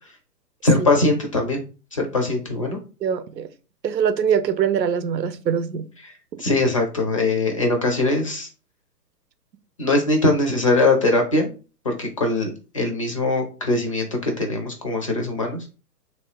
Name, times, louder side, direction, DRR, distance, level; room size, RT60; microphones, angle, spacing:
voice 1, 0.6-1.6 1.9-2.8 6.0-6.1 6.4-8.5 9.8-11.5 11.8-15.6, left 2 dB, 20° left, 0.4 m, -21 dB
voice 2, 3.0-3.5 3.8-5.9 6.3-6.4, right 7 dB, 85° right, 0.8 m, -23 dB
3.2 x 3.0 x 4.4 m
hypercardioid pair, 145°, 49 cm